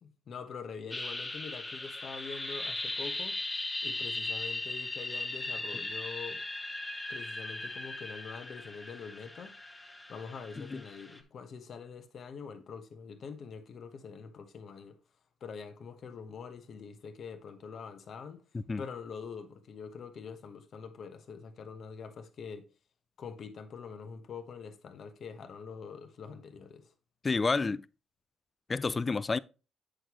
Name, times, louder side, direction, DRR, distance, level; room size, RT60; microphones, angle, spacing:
voice 1, 0.0-3.4 3.8-6.4 7.1-9.5 10.1-15.0 15.4-18.4 18.8-22.6 23.2-26.9, left 6 dB, 60° left, 1.2 m, -44 dB
sound 1, 0.9-11.2, left 2 dB, 15° left, 1.1 m, -38 dB
voice 2, 27.2-27.9 28.7-29.4, left 4 dB, 30° left, 0.3 m, -29 dB
8.0 x 6.4 x 3.1 m
cardioid pair, 100°, 0 cm